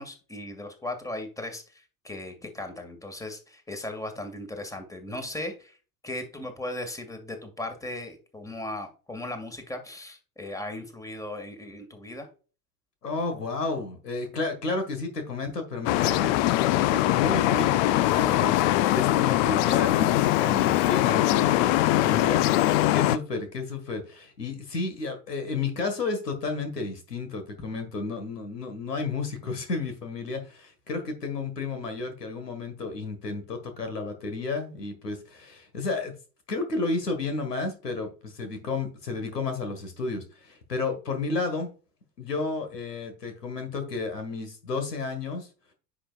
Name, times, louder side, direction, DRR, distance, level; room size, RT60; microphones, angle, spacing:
voice 1, 0.0-5.8 6.0-12.3, left 1 dB, 5° left, 6 dB, 2.0 m, -37 dB
voice 2, 13.0-22.5 22.9-36.1 36.5-41.7 42.2-45.5, left 3 dB, 85° left, 7 dB, 1.8 m, -32 dB
sound 1, 15.9-23.2, left 15 dB, 50° left, 0.6 m, -22 dB
10.0 x 6.0 x 2.4 m, 0.36 s
figure-of-eight pair, 80°, 47 cm